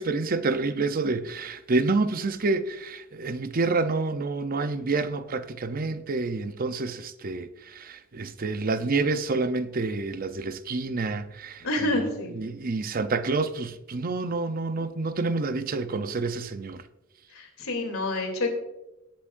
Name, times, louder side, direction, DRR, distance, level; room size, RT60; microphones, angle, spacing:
voice 1, 0.0-11.6 12.4-16.8, right 3 dB, 45° right, 0.6 m, -28 dB
voice 2, 11.6-12.3 17.3-18.5, left 2 dB, 75° left, 3.0 m, -28 dB
18.5 x 8.4 x 2.6 m
head